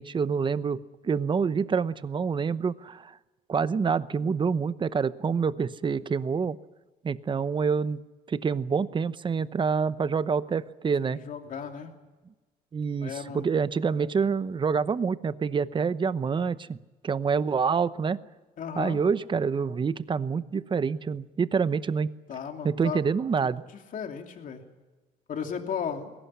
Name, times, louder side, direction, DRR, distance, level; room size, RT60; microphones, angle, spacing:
voice 1, 0.0-3.1 3.5-6.6 7.0-8.0 8.3-11.2 12.7-16.8 17.0-18.2 18.8-22.1 22.6-23.6, right 5 dB, 30° right, 15 dB, 0.8 m, -27 dB
voice 2, 11.0-11.9 13.0-13.5 18.6-19.0 22.3-23.0 23.5-24.6 25.3-26.1, left 7 dB, 50° left, 4 dB, 2.9 m, -35 dB
20.5 x 17.5 x 9.8 m, 1.2 s
cardioid pair, 110°, 17 cm